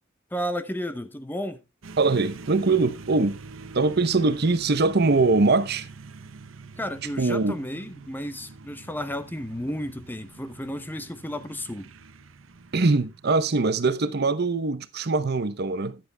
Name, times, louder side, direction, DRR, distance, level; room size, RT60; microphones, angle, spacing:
voice 1, 0.3-1.6 6.8-11.9, equal, 10° left, 0.7 m, -33 dB
sound 1, 1.8-13.5, right 4 dB, 90° right, 0.8 m, -45 dB
voice 2, 2.0-3.4 3.7-5.9 7.2-7.6 12.7-16.0, right 3 dB, 55° right, 0.8 m, -22 dB
14.0 x 10.0 x 2.3 m
head